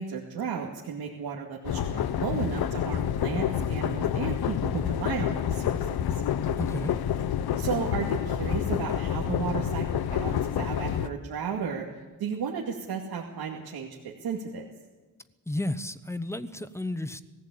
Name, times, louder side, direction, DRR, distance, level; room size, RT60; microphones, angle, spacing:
voice 1, 0.0-6.0 7.6-11.8 12.2-14.7, right 6 dB, 80° right, 2.4 m, -34 dB
sound 1, 1.6-11.1, left 9 dB, 75° left, 0.9 m, -28 dB
voice 2, 6.6-7.0 15.5-17.2, left 1 dB, 5° left, 0.9 m, -32 dB
20.0 x 15.5 x 8.6 m
cardioid pair, 125°, 37 cm